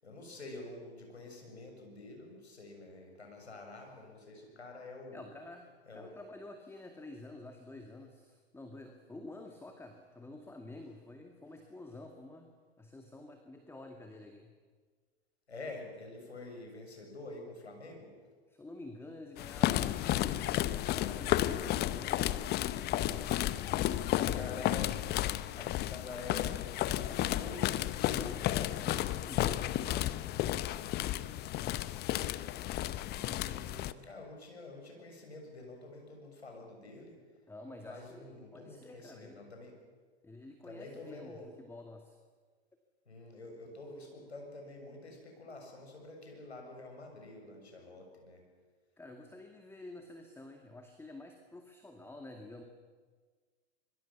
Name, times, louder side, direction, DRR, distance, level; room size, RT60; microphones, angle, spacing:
voice 1, 0.0-5.3 5.9-6.2 15.5-18.2 24.1-25.2 25.6-27.8 33.4-37.2 37.8-39.8 40.6-41.5 43.1-48.4, left 2 dB, 85° left, 2 dB, 6.9 m, -48 dB
voice 2, 5.1-12.5 12.8-14.5 18.5-22.4 22.7-23.3 28.1-30.2 37.5-39.5 40.2-42.2 49.0-52.6, left 2 dB, 5° left, 4 dB, 2.2 m, -49 dB
sound 1, 19.4-33.9, left 14 dB, 30° left, 0.9 m, -32 dB
25.5 x 22.5 x 7.3 m, 1.5 s
figure-of-eight pair, 100°, 32 cm